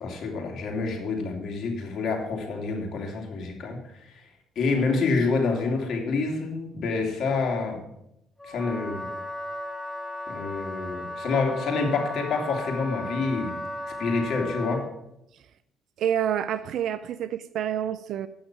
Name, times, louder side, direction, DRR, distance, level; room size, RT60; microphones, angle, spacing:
voice 1, 0.0-3.8 4.6-7.8 8.5-9.1 10.3-13.5 14.0-14.9, left 4 dB, 60° left, 1 dB, 2.7 m, -27 dB
Wind instrument woodwind instrument, 8.4-14.9, left 1 dB, 15° left, 2.3 m, -35 dB
voice 2, 16.0-18.3, right 10 dB, 65° right, 14 dB, 0.5 m, -28 dB
8.7 x 6.6 x 7.4 m, 0.80 s
supercardioid pair, 70°, 0 cm